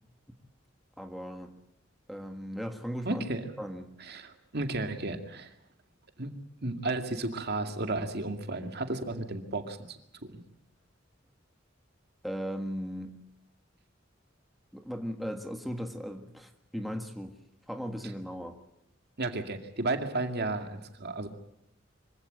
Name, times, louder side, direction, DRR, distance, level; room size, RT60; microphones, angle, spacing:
voice 1, 1.0-1.5 2.1-3.3 3.6-3.9 12.2-13.1 14.7-17.3 17.7-18.6, equal, ahead, 4 dB, 1.6 m, -37 dB
voice 2, 3.1-3.5 4.0-5.5 6.2-6.3 6.6-10.4 19.2-21.3, right 2 dB, 55° right, 6 dB, 2.3 m, -33 dB
25.0 x 16.5 x 8.9 m, 0.78 s
head